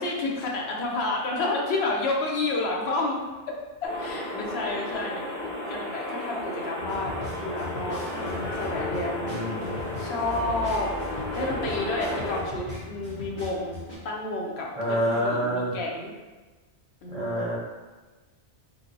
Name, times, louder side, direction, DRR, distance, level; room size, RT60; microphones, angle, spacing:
voice 1, 0.0-3.2 3.8-5.2 5.7-9.4 10.0-10.9 11.3-13.7 14.0-16.1 17.0-17.6, left 2 dB, 70° left, -2 dB, 0.8 m, -30 dB
sound 1, 3.8-12.4, left 1 dB, 30° left, 1.0 m, -33 dB
sound 2, 6.8-13.9, left 1 dB, 50° left, 0.9 m, -38 dB
voice 2, 9.2-9.7 14.7-15.7 17.1-17.6, equal, 40° right, -8 dB, 0.6 m, -27 dB
3.2 x 2.1 x 2.5 m, 1.2 s
omnidirectional pair, 1.2 m